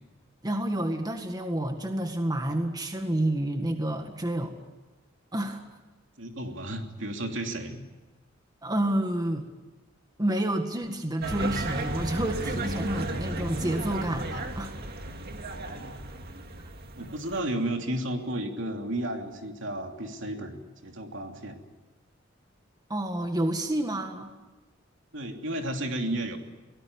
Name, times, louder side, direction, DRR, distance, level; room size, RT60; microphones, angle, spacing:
voice 1, 0.4-4.5 5.3-5.6 8.6-9.5 10.2-14.8 22.9-24.3, right 1 dB, 20° right, 5 dB, 1.8 m, -29 dB
voice 2, 6.2-7.8 15.5-16.0 17.0-21.6 25.1-26.4, right 1 dB, 65° right, 3 dB, 3.0 m, -33 dB
sound 1, 11.2-17.4, right 1 dB, 50° right, 2.1 m, -34 dB
23.5 x 19.0 x 9.7 m, 1.1 s
head